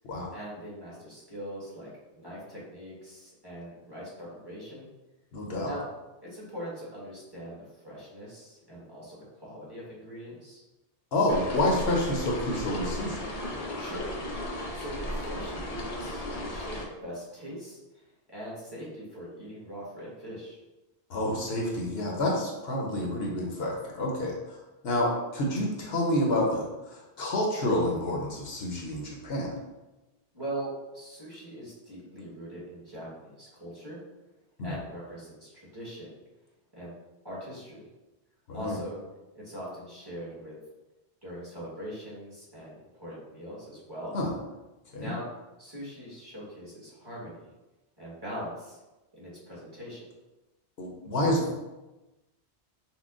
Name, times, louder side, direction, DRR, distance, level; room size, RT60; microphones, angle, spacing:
voice 1, 0.3-4.9 5.6-5.8 6.2-10.6 13.8-14.2 14.7-20.6 30.3-34.0 34.6-36.2 36.7-36.9 37.2-37.9 38.5-39.0 39.3-40.6 41.2-44.2 45.0-45.3 45.6-47.5 48.0-48.8 49.1-50.1, equal, 20° right, -8 dB, 1.3 m, -41 dB
voice 2, 5.3-5.7 11.1-13.3 21.1-24.6 24.8-29.5 34.6-34.7 38.5-38.8 44.1-44.3 44.9-45.1 50.8-51.6, left 1 dB, 70° left, -1 dB, 0.9 m, -28 dB
sound 1, 11.3-16.9, left 1 dB, 45° left, 0.6 m, -35 dB
5.6 x 2.2 x 2.4 m, 1.1 s
omnidirectional pair, 1.1 m